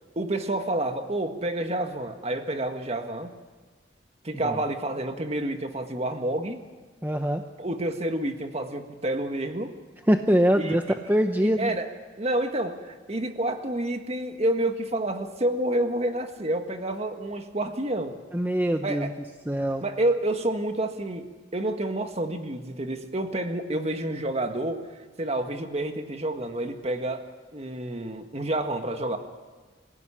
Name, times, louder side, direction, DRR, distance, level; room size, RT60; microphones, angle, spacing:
voice 1, 0.1-3.3 4.2-6.6 7.6-9.7 10.6-10.8 11.4-11.9 12.2-18.2 18.8-19.1 19.8-21.3 21.5-24.8 25.2-29.2, right 1 dB, 35° right, 6 dB, 1.7 m, -29 dB
voice 2, 7.0-7.5 10.1-11.7 18.3-19.1 19.5-19.8, equal, 10° right, 6 dB, 0.8 m, -23 dB
25.5 x 16.5 x 10.0 m, 1.4 s
head